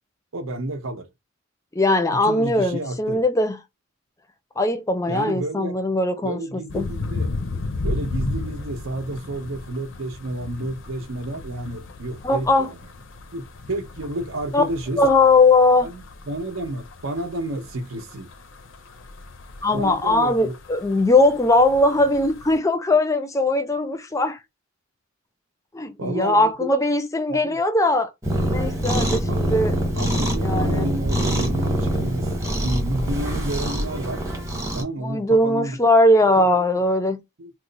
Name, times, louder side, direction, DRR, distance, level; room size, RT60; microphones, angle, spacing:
voice 1, 0.3-1.1 2.2-3.2 5.1-5.7 6.2-7.3 7.8-12.7 13.3-15.0 15.8-16.0 16.3-18.3 19.7-20.5 26.0-26.7 27.3-27.6 29.3-29.4 30.0-32.3 32.6-34.2 34.7-35.8 36.4-36.8 37.4-37.5, right 1 dB, 80° right, 0.7 m, -30 dB
voice 2, 1.7-3.6 4.6-6.9 12.2-12.7 14.5-14.7 15.0-15.9 19.6-24.4 25.7-28.1 28.4-29.8 30.4-30.9 35.0-37.2, left 2 dB, 15° left, 0.4 m, -20 dB
sound 1, 6.7-22.6, left 3 dB, 65° left, 0.5 m, -35 dB
Cat, 28.2-34.8, equal, 15° right, 0.8 m, -24 dB
3.0 x 2.0 x 3.8 m
head